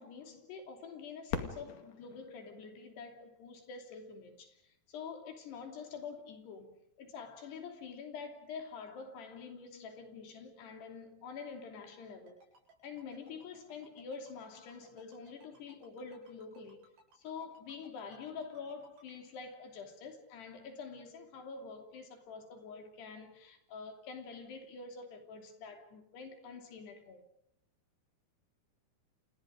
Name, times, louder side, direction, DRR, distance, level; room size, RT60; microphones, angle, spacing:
voice 1, 0.0-12.4 12.8-16.9 17.2-27.2, left 5 dB, 80° left, 5.1 m, -47 dB
Fireworks, 1.3-4.0 4.7-4.8 5.5-6.0 7.9-8.0, left 7 dB, 55° left, 3.4 m, -43 dB
Ringtone, 12.3-19.0, right 2 dB, 60° right, 9.8 m, -62 dB
29.0 x 29.0 x 5.1 m
omnidirectional pair, 4.7 m